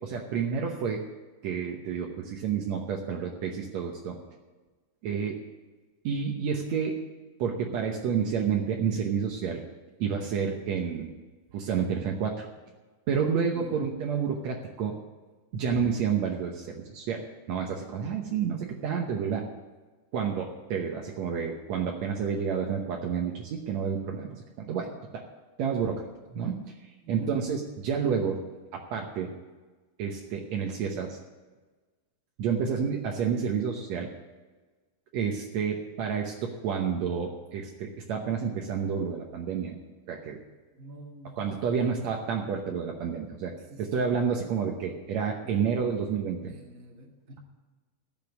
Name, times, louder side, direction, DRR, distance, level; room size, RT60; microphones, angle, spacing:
voice 1, 0.0-1.1 1.4-4.2 5.0-5.4 6.0-7.0 7.4-9.6 10.0-11.1 11.5-12.5 13.1-15.0 15.5-19.5 20.1-24.3 24.7-25.2 25.6-26.1 26.3-26.6 27.1-28.4 28.7-29.3 30.0-31.2 32.4-34.1 35.1-39.7 40.1-40.4 41.4-43.5 43.8-46.5, right 6 dB, 75° right, 1 dB, 1.6 m, -29 dB
voice 2, 27.0-27.4 40.7-42.2 43.7-44.1 46.4-47.4, right 1 dB, 45° right, 0 dB, 1.1 m, -47 dB
15.5 x 5.3 x 9.5 m, 1.3 s
omnidirectional pair, 4.5 m